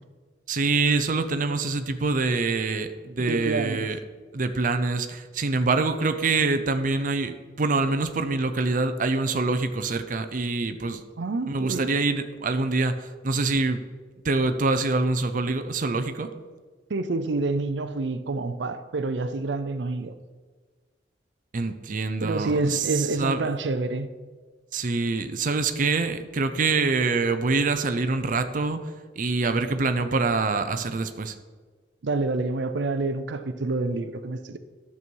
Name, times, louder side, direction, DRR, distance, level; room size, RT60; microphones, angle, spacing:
voice 1, 0.5-4.0 4.3-11.0 11.5-13.8 14.2-16.3 21.5-23.4 24.7-28.9 29.2-31.3, right 3 dB, 50° right, 8 dB, 0.6 m, -25 dB
voice 2, 3.3-3.9 11.2-11.9 16.9-20.1 22.2-24.1 32.0-34.6, right 3 dB, 90° right, 10 dB, 0.6 m, -28 dB
11.0 x 7.0 x 4.6 m, 1.4 s
head